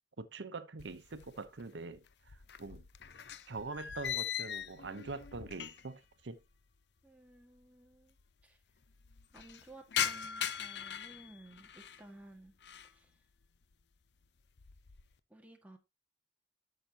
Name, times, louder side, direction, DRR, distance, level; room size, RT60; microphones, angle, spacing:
voice 1, 0.2-2.9 3.5-6.4, right 3 dB, 90° right, 0.8 m, -44 dB
sound 1, 0.8-1.7 1.9-6.0 6.3-6.4 7.3-7.4 7.6-7.7 7.9-8.4 8.8-12.0 12.5-13.0 13.4-13.8 14.2-15.1, left 9 dB, 70° left, 0.7 m, -40 dB
voice 2, 7.0-8.2 8.4-8.6 9.3-12.5 12.8-13.1 15.3-15.8, right 1 dB, 10° right, 1.7 m, -56 dB
11.5 x 6.7 x 2.8 m
head